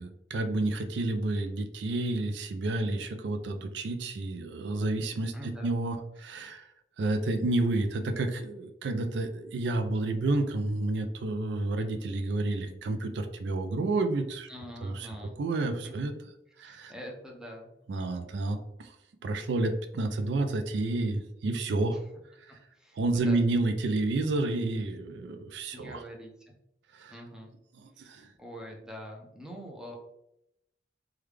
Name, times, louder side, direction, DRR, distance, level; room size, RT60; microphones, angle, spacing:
voice 1, 0.0-6.7 7.0-14.5 14.8-15.1 15.4-16.1 16.6-16.9 17.9-18.9 19.2-22.0 22.4-22.5 23.0-26.0 26.9-27.1 27.8-28.3, right 2 dB, 70° right, 7 dB, 0.3 m, -30 dB
voice 2, 5.3-5.7 14.5-15.4 15.8-16.0 16.6-17.7 21.9-22.0 22.7-23.4 25.7-26.3 27.1-27.5 27.9-30.0, equal, 5° right, 0 dB, 0.5 m, -44 dB
3.3 x 2.3 x 3.2 m, 0.83 s
head